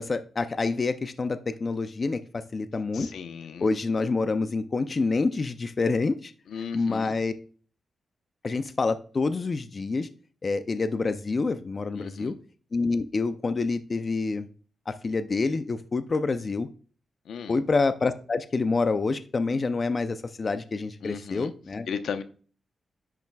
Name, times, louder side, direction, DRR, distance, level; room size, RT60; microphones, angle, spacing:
voice 1, 0.0-3.1 3.6-6.3 6.7-7.3 8.4-10.1 10.4-12.4 12.7-14.5 14.9-16.7 17.5-21.9, left 3 dB, 35° left, 0.5 m, -27 dB
voice 2, 2.9-3.7 6.5-7.2 11.9-12.3 17.2-17.6 21.0-21.5 21.9-22.2, left 6 dB, 90° left, 0.8 m, -36 dB
10.5 x 5.8 x 2.3 m
wide cardioid pair, 140°, 0 cm